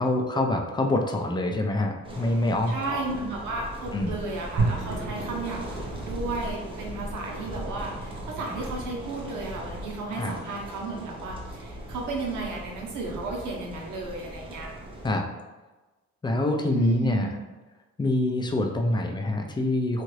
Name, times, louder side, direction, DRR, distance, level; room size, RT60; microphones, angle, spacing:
voice 1, 0.0-3.0 3.9-4.2 10.2-10.3 15.0-15.3 16.2-17.3 18.0-20.0, left 1 dB, 15° left, 3 dB, 0.4 m, -25 dB
sound 1, 2.0-15.1, equal, 15° right, 0.7 m, -39 dB
voice 2, 2.7-5.6 6.0-14.7 16.7-17.4, right 3 dB, 90° right, -1 dB, 0.8 m, -34 dB
sound 2, 4.6-14.8, right 3 dB, 55° right, 0.9 m, -37 dB
2.8 x 2.4 x 3.1 m, 1.2 s
cardioid pair, 90°, 30 cm